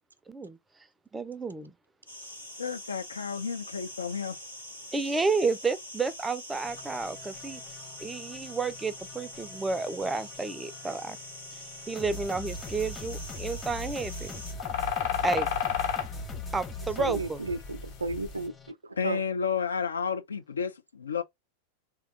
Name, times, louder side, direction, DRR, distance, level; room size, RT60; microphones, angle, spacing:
voice 1, 0.3-0.6 1.1-1.7 4.9-7.6 8.0-11.2 11.9-14.4 15.2-15.5 16.5-17.4, right 4 dB, 10° right, 0.4 m, -31 dB
sound 1, 2.1-14.5, left 1 dB, 90° left, 1.4 m, -44 dB
voice 2, 2.6-4.4 4.9-5.0 19.0-21.2, left 6 dB, 70° left, 0.5 m, -31 dB
sound 2, 6.6-18.7, left 1 dB, 15° left, 0.8 m, -42 dB
sound 3, 12.5-18.4, left 9 dB, 45° left, 1.1 m, -33 dB
voice 3, 17.0-18.5 18.8-19.2, right 3 dB, 80° right, 0.4 m, -33 dB
3.2 x 2.3 x 3.3 m
figure-of-eight pair, 90°, 0 cm